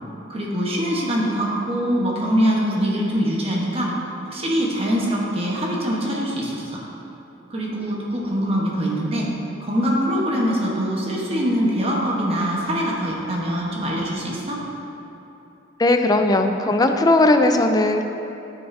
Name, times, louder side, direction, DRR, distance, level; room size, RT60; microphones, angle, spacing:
voice 1, 0.3-3.9 4.3-6.8 7.5-9.3 9.6-14.6, equal, 30° right, -3 dB, 1.0 m, -23 dB
voice 2, 15.8-18.0, left 2 dB, 20° left, 6 dB, 0.4 m, -17 dB
13.0 x 4.7 x 2.6 m, 3.0 s
head